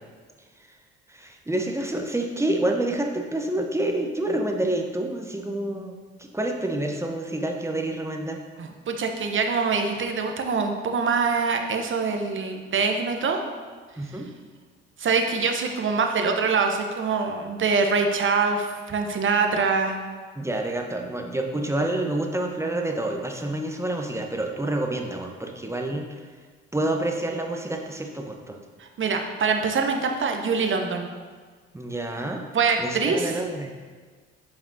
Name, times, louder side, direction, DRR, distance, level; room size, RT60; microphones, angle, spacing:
voice 1, 1.1-8.4 14.0-14.4 20.4-26.0 26.7-28.6 31.7-32.5 32.8-33.7, right 1 dB, 10° right, 2 dB, 0.9 m, -28 dB
voice 2, 8.6-13.4 15.0-20.0 28.8-31.1 32.5-33.4, right 4 dB, 40° right, 4 dB, 0.9 m, -24 dB
7.6 x 5.2 x 2.7 m, 1.5 s
hypercardioid pair, 50°, 31 cm